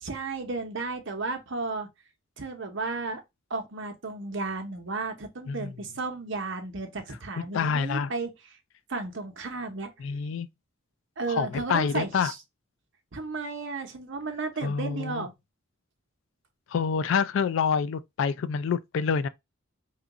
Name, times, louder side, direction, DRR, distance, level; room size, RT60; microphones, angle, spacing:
voice 1, 0.0-1.9 2.4-3.2 3.5-8.6 8.9-9.9 11.2-12.4 13.1-15.3, right 3 dB, 60° right, 0.8 m, -33 dB
voice 2, 7.5-8.1 10.0-10.5 11.3-12.3 14.6-15.3 16.7-19.3, left 6 dB, 65° left, 0.3 m, -27 dB
3.0 x 2.4 x 3.7 m
head